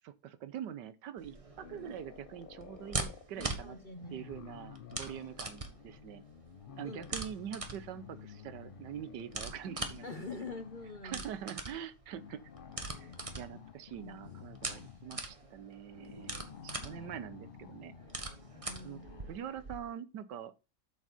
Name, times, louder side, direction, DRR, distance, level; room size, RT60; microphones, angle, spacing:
voice 1, 0.0-3.8 4.1-6.2 6.8-10.3 11.0-12.4 12.9-13.1 13.4-17.9 18.8-19.0 19.3-20.5, right 9 dB, 80° right, 1.4 m, -44 dB
sound 1, 1.2-19.8, right 2 dB, 20° right, 1.3 m, -43 dB
sound 2, 1.6-3.3 3.9-11.1 12.1-19.5, left 7 dB, 75° left, 0.4 m, -52 dB
voice 2, 3.4-4.3 6.8-7.1 10.0-11.2 18.6-19.0, left 3 dB, 35° left, 0.9 m, -44 dB
8.3 x 7.3 x 4.1 m
omnidirectional pair, 1.9 m